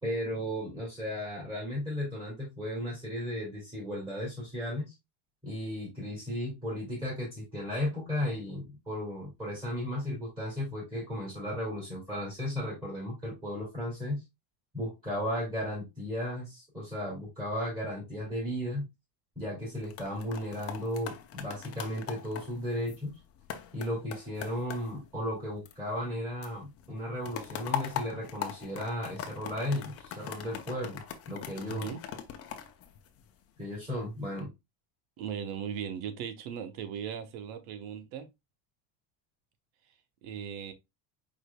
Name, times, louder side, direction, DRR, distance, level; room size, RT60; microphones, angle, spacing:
voice 1, 0.0-4.9 5.4-14.2 14.7-18.9 19.4-23.1 23.7-31.0 31.3-31.9 33.6-34.5, left 1 dB, 10° right, 2.4 m, -35 dB
sound 1, 19.7-26.2 26.4-33.6 34.1-34.4, left 9 dB, 35° left, 0.6 m, -41 dB
voice 2, 31.7-32.0 35.2-38.3 40.2-40.7, right 8 dB, 90° right, 1.1 m, -38 dB
4.9 x 4.9 x 2.2 m
cardioid pair, 170°, 43 cm